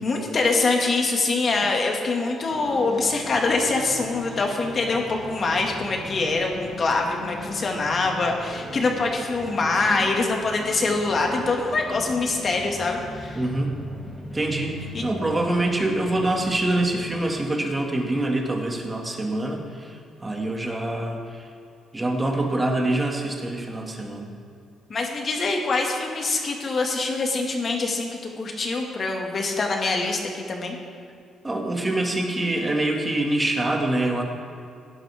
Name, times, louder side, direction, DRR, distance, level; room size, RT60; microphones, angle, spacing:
voice 1, 0.0-13.4 14.9-15.0 24.9-28.1 28.4-30.8, left 3 dB, 45° left, 1 dB, 2.1 m, -24 dB
sound 1, 2.5-18.8, left 1 dB, 15° left, 3.7 m, -39 dB
voice 2, 13.3-13.8 14.3-21.4 21.9-24.3 31.4-34.2, right 1 dB, 20° right, 1 dB, 2.2 m, -25 dB
17.5 x 11.0 x 3.6 m, 2.5 s
cardioid pair, 90°, 0 cm